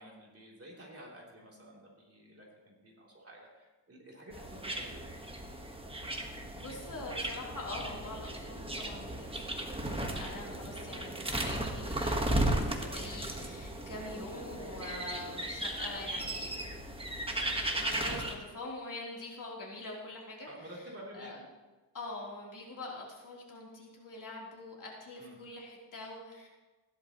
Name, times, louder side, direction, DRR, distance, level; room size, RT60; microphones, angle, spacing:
voice 1, 0.0-5.1 10.5-10.6 20.5-21.4 25.2-25.4, equal, 35° right, -3 dB, 3.1 m, -51 dB
sound 1, 4.3-18.3, right 1 dB, 15° right, 1.3 m, -36 dB
voice 2, 6.2-16.6 17.7-20.7 21.1-21.4 21.9-26.5, left 2 dB, 50° left, -3 dB, 3.3 m, -44 dB
16.0 x 11.0 x 3.0 m, 1.2 s
cardioid pair, 110°, 42 cm